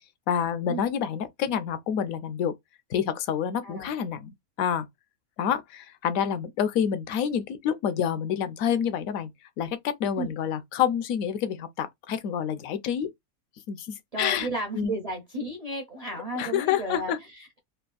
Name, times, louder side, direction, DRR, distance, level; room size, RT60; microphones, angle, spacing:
voice 1, 0.3-2.5 2.9-4.9 5.4-9.3 9.6-13.1 13.7-14.5 14.7-14.9 16.4-17.2, left 8 dB, 70° left, 1.0 m, -28 dB
voice 2, 3.6-3.9 10.2-10.3 14.1-17.6, right 2 dB, 45° right, 0.5 m, -34 dB
3.5 x 2.3 x 2.3 m
omnidirectional pair, 1.6 m